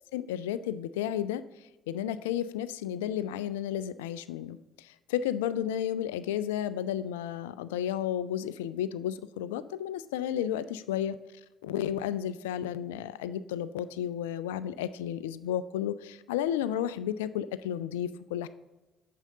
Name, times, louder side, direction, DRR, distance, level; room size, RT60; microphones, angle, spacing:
voice 1, 0.1-1.4 1.9-11.2 11.6-18.5, left 10 dB, 80° left, 15 dB, 0.3 m, -32 dB
8.8 x 7.6 x 2.8 m, 1.1 s
figure-of-eight pair, 50°, 0 cm